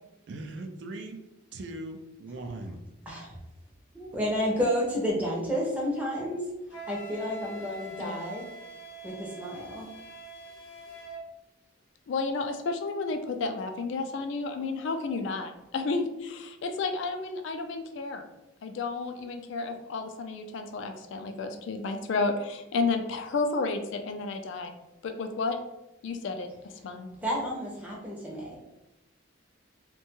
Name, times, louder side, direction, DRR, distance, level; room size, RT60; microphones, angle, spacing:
voice 1, 0.3-1.2 1.5-2.8, right 2 dB, 55° right, 5 dB, 0.3 m, -39 dB
voice 2, 3.9-6.5 6.9-8.5 9.0-9.9 27.2-28.6, equal, 5° right, -3 dB, 0.5 m, -31 dB
Wind instrument woodwind instrument, 6.7-11.2, right 1 dB, 85° left, 0.8 m, -44 dB
voice 3, 12.1-18.2 18.6-24.7 25.0-25.6 26.0-26.5 26.8-27.1, left 3 dB, 65° left, 6 dB, 0.3 m, -31 dB
2.6 x 2.2 x 2.9 m, 0.94 s
head